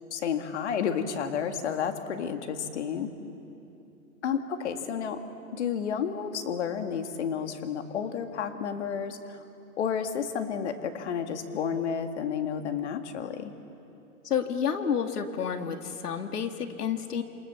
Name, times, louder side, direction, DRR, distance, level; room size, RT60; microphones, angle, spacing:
voice 1, 0.1-3.1 4.2-5.2 5.5-9.4 9.8-13.5, left 7 dB, 50° left, 7 dB, 2.0 m, -31 dB
voice 2, 14.2-17.2, left 7 dB, 90° left, 6 dB, 2.5 m, -30 dB
28.0 x 26.5 x 7.1 m, 2.8 s
hypercardioid pair, 170°, 45 cm